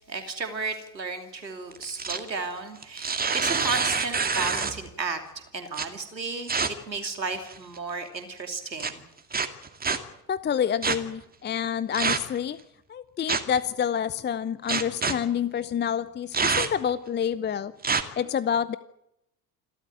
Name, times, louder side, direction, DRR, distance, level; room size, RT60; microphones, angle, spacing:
voice 1, 0.1-5.2 5.5-9.0, right 4 dB, 85° right, 6 dB, 3.0 m, -33 dB
sound 1, 1.7-2.3 2.8-4.9 5.7-5.8 6.5-6.7 7.4-7.8 8.8-8.9 9.3-10.0 10.8-11.0 11.9-12.4 13.3-13.6 14.7-15.1 16.3-16.9 17.8-18.0, right 5 dB, 20° right, 2.3 m, -26 dB
voice 2, 10.3-12.6 12.9-17.7 18.2-18.8, left 8 dB, 20° left, 17 dB, 0.7 m, -28 dB
28.0 x 13.0 x 9.1 m, 0.83 s
figure-of-eight pair, 65°, 50 cm